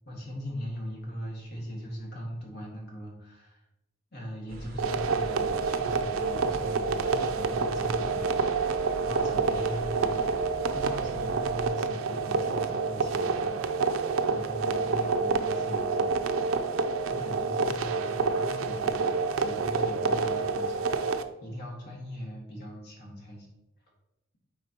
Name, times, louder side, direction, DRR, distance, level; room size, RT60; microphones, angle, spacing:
voice 1, 0.0-3.6 4.1-19.1 19.4-20.9 21.2-23.5, equal, 55° left, -2 dB, 1.9 m, -40 dB
sound 1, 4.5-11.7, equal, 45° right, 1.1 m, -43 dB
sound 2, 4.8-21.2, right 4 dB, 75° right, 0.5 m, -28 dB
8.5 x 4.4 x 2.9 m, 0.93 s
head